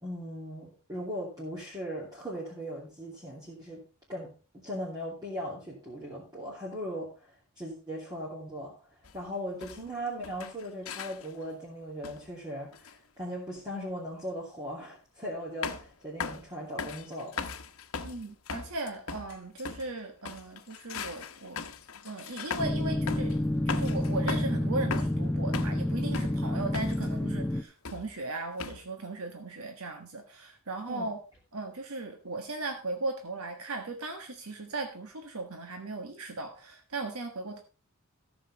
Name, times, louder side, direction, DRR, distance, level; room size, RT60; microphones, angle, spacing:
voice 1, 0.0-3.8 4.1-4.3 4.6-7.3 7.6-8.7 9.1-17.5 30.9-31.1, equal, 15° right, -6 dB, 2.7 m, -38 dB
sound 1, 9.0-9.2 9.6-9.9 10.2-11.4 12.0-12.3 12.7-12.9 14.1-14.3 15.6-15.9 16.2-16.5 16.8-19.9 20.2-22.8 23.1-23.4 23.7-24.6 24.9-25.9 26.1-27.1 27.8-28.2 28.6-28.8, left 5 dB, 70° left, 1.0 m, -39 dB
voice 2, 18.0-21.6 22.0-31.2 31.5-37.6, right 2 dB, 75° right, 4 dB, 1.4 m, -37 dB
sound 2, 22.6-27.6, left 1 dB, 5° left, 0.5 m, -29 dB
14.0 x 7.0 x 4.1 m, 0.33 s
head